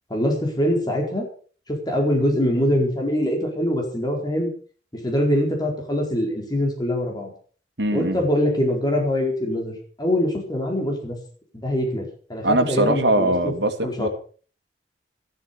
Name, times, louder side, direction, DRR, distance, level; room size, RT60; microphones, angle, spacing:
voice 1, 0.1-1.3 1.7-4.5 5.0-7.3 7.9-11.2 11.5-13.5 13.8-14.1, equal, 25° left, 1 dB, 4.5 m, -23 dB
voice 2, 7.8-8.2 12.4-14.1, right 1 dB, 80° right, 5 dB, 2.4 m, -21 dB
13.5 x 12.0 x 6.9 m, 0.43 s
head